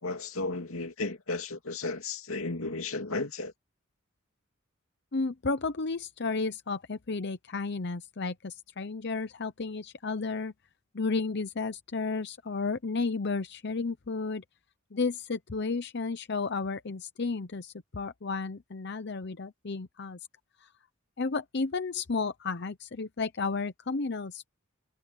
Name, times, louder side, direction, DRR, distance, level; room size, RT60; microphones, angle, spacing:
voice 1, 0.0-3.5, left 3 dB, 90° left, 2.5 m, -34 dB
voice 2, 5.1-10.5 10.9-14.4 14.9-20.2 20.6-20.7 21.2-24.5, left 4 dB, 55° left, 0.7 m, -32 dB
head